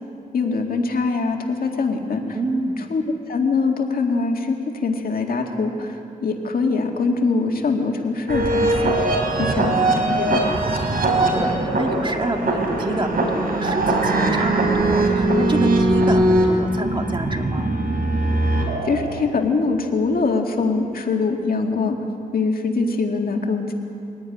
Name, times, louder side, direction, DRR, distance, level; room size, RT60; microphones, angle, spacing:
voice 1, 0.3-2.4 2.9-3.0 3.3-10.6 18.8-22.0 22.3-23.7, left 4 dB, 80° left, 2 dB, 2.1 m, -23 dB
voice 2, 2.3-2.7 9.4-9.8 11.1-17.7, right 2 dB, 30° right, 4 dB, 2.0 m, -27 dB
sound 1, 8.3-19.3, right 2 dB, 75° right, 3.9 m, -21 dB
22.5 x 16.5 x 9.9 m, 2.6 s
wide cardioid pair, 100°, 15 cm